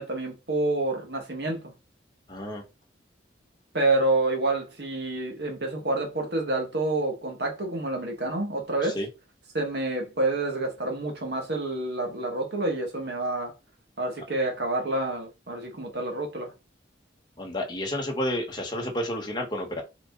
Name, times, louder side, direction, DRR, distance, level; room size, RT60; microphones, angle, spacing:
voice 1, 0.0-1.6 3.7-9.0 9.5-13.5 14.0-16.5, right 2 dB, 60° right, 1.9 m, -28 dB
voice 2, 2.3-2.6 8.8-9.1 17.4-19.8, left 1 dB, 25° left, 1.7 m, -30 dB
5.2 x 4.5 x 4.1 m
head